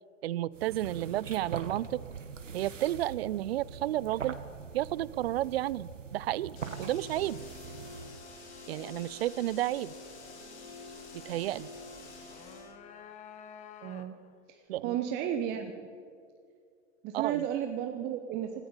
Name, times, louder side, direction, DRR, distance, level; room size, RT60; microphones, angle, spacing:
voice 1, 0.2-2.0 2.5-4.4 4.7-7.4 8.7-9.9 11.2-11.7 14.7-15.0 17.1-17.4, right 14 dB, 55° right, 22 dB, 0.4 m, -32 dB
sound 1, 0.5-8.2, right 6 dB, 75° right, 1.1 m, -42 dB
sound 2, 6.5-12.7, left 3 dB, 60° left, 3.2 m, -47 dB
sound 3, 12.0-14.4, left 8 dB, 20° left, 0.7 m, -50 dB
voice 2, 13.8-14.1 14.5-15.7 17.0-18.7, right 10 dB, 25° right, 6 dB, 0.9 m, -33 dB
16.5 x 14.0 x 5.5 m, 2.2 s
figure-of-eight pair, 105°, 38 cm